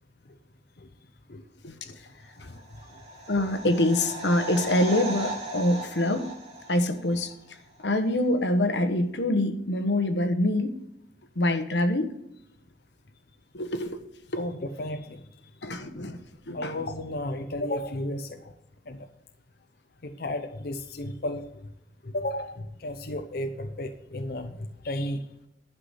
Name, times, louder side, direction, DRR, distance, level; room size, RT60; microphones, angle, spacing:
voice 1, 1.8-3.0 14.4-15.5 16.5-18.5 18.9-19.1 20.0-21.5 22.0-25.2, left 1 dB, 60° left, 5 dB, 0.8 m, -34 dB
sound 1, 2.5-7.3 7.6-7.7, right 1 dB, 40° right, 2.2 m, -37 dB
voice 2, 3.3-6.3 6.7-7.4 7.8-10.7 11.4-12.1 13.5-14.0 14.3-14.4 15.6-16.2 16.5-16.7, left 1 dB, 85° left, 8 dB, 1.2 m, -25 dB
11.5 x 6.0 x 7.9 m, 0.83 s
head